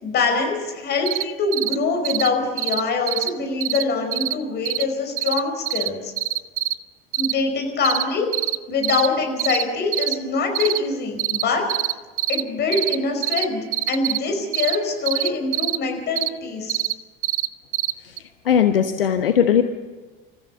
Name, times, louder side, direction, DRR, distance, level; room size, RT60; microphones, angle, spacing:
voice 1, 0.0-6.1 7.2-8.3 8.7-11.7 12.3-16.8, left 4 dB, 35° left, 3 dB, 5.1 m, -24 dB
sound 1, 1.1-1.2 1.5-1.7 2.0-2.3 2.6-2.8 3.1-3.3 3.6-3.8 4.1-4.3 4.6-4.8 5.2-5.4 5.7-5.9 6.2-6.7 7.1-7.3 7.8-8.0 8.3-8.6 8.8-9.1 9.4-9.6 9.9-10.1 10.5-10.8 11.2-11.4 11.7-11.9 12.2-12.4 12.7-13.0 13.2-13.4 13.7-14.2 14.5-14.8 15.1-15.8 16.2-16.3 16.7-16.9 17.2-17.5 17.7-17.9 18.2-18.3, right 15 dB, 65° right, 0.6 m, -23 dB
voice 2, 18.5-19.6, left 8 dB, 70° left, 8 dB, 0.9 m, -18 dB
27.5 x 14.5 x 6.9 m, 1.3 s
figure-of-eight pair, 70°, 29 cm